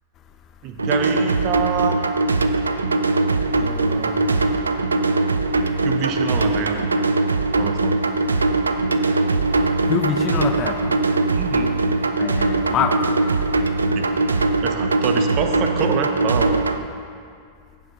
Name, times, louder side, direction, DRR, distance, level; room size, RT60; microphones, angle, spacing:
voice 1, 0.6-2.1 3.5-4.3 5.8-6.8 7.6-8.0 11.3-11.8 14.0-14.1 14.6-16.5, right 7 dB, 40° right, 0.8 m, -26 dB
sound 1, 0.8-16.8, right 3 dB, 75° right, 0.4 m, -21 dB
voice 2, 9.9-11.0 12.2-13.2, left 7 dB, 30° left, 0.5 m, -25 dB
15.5 x 5.1 x 3.6 m
figure-of-eight pair, 90°, 0 cm